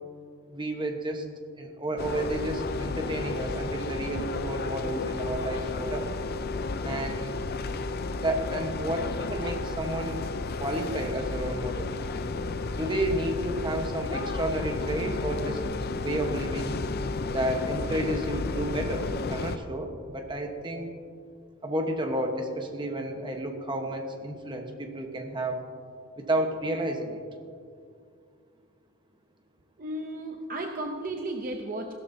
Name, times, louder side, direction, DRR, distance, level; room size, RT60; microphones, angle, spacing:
voice 1, 0.5-1.3 1.5-6.1 6.8-7.4 8.1-10.2 10.6-11.9 12.7-15.6 16.0-16.8 17.3-20.9 21.6-25.6 26.2-27.2, right 1 dB, 20° right, 4 dB, 1.1 m, -31 dB
sound 1, 2.0-19.6, left 3 dB, 45° left, 0.5 m, -32 dB
voice 2, 29.8-31.9, right 1 dB, 40° right, 3 dB, 0.6 m, -34 dB
16.0 x 12.5 x 2.7 m, 2.3 s
head